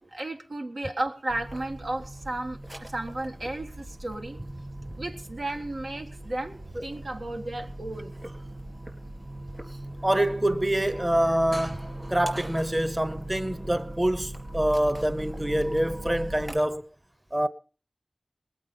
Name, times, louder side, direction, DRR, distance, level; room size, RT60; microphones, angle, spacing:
voice 1, 0.0-4.4 4.9-8.1, right 2 dB, 90° right, 1.6 m, -34 dB
sound 1, 1.3-16.6, right 1 dB, 40° right, 4.1 m, -39 dB
voice 2, 10.0-16.8 17.3-17.5, right 1 dB, 25° right, 0.8 m, -26 dB
20.0 x 8.5 x 5.5 m
wide cardioid pair, 55°, 0 cm